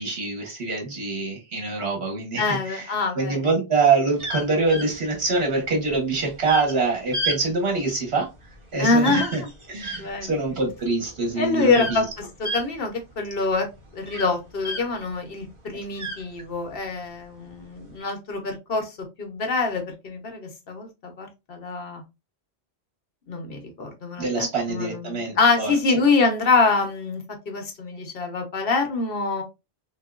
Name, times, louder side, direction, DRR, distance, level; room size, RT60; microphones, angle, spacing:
voice 1, 0.0-2.8 3.1-8.3 8.7-9.4 9.7-12.0 24.2-25.7, right 3 dB, 70° right, 1.4 m, -25 dB
voice 2, 2.4-3.5 8.8-9.3 10.0-10.4 11.4-12.0 12.4-13.7 13.9-22.0 23.3-29.4, left 4 dB, 65° left, 1.1 m, -25 dB
sound 1, 4.2-15.1 15.5-16.8 17.5-17.9, equal, 30° right, 1.0 m, -33 dB
3.6 x 2.9 x 2.4 m
omnidirectional pair, 1.1 m